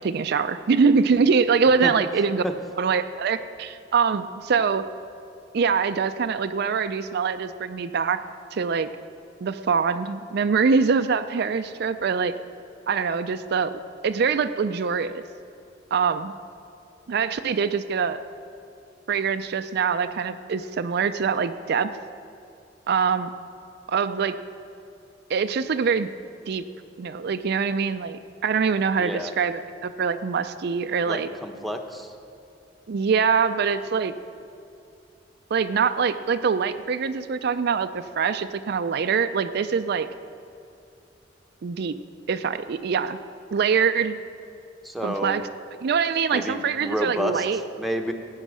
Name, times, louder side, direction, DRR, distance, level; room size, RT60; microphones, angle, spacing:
voice 1, 0.0-2.4 2.8-4.8 5.5-8.2 8.5-8.9 9.4-12.3 12.9-13.7 14.0-15.2 15.9-16.3 17.1-18.2 19.1-21.9 22.9-23.3 23.9-24.4 25.3-26.1 26.5-26.6 27.0-31.3 32.9-34.1 35.5-40.1 41.6-41.9 42.3-43.2 43.5-44.1 45.0-45.4 45.8-47.6, right 5 dB, 60° right, 10 dB, 0.4 m, -24 dB
voice 2, 29.0-29.3 31.1-32.1 44.8-45.4 46.3-47.4 47.8-48.1, equal, ahead, 4 dB, 0.9 m, -29 dB
15.5 x 8.9 x 6.2 m, 2.6 s
head